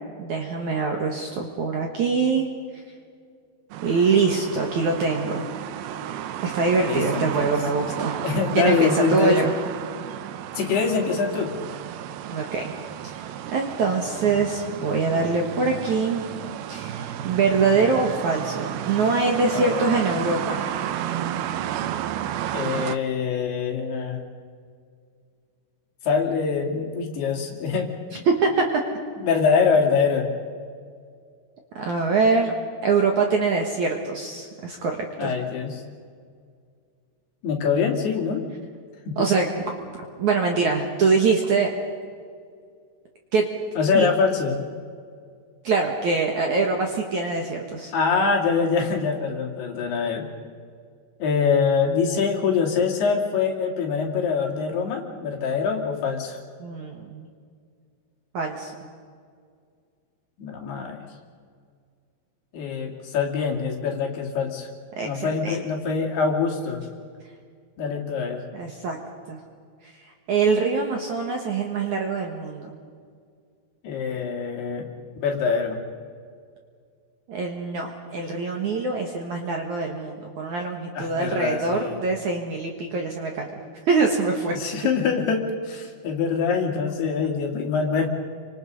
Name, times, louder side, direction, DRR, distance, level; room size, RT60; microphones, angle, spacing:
voice 1, 0.2-2.5 3.8-5.5 6.4-8.2 8.5-9.5 12.3-12.7 13.5-16.2 16.7-20.7 28.3-28.7 31.8-32.5 32.8-35.3 39.2-39.5 39.8-41.7 43.3-43.5 43.9-44.1 45.6-47.9 56.6-57.3 58.3-58.7 65.0-65.6 68.5-69.0 69.3-69.4 70.0-72.7 77.3-83.5 83.9-84.6, right 4 dB, 55° right, 2 dB, 2.3 m, -24 dB
sound 1, 3.7-23.0, right 11 dB, 75° right, 2.4 m, -32 dB
voice 2, 6.8-7.5 8.2-9.4 10.6-11.5 19.5-20.0 22.5-24.2 26.0-28.2 29.2-30.3 35.2-35.8 37.4-38.4 39.1-39.3 43.8-44.7 47.9-50.3 51.2-56.4 60.4-61.0 62.5-64.7 65.0-66.8 67.8-68.4 73.8-74.9 75.2-75.8 81.0-82.0 84.5-88.1, left 5 dB, 65° left, 1 dB, 4.4 m, -24 dB
28.5 x 25.5 x 5.4 m, 2.1 s
omnidirectional pair, 5.2 m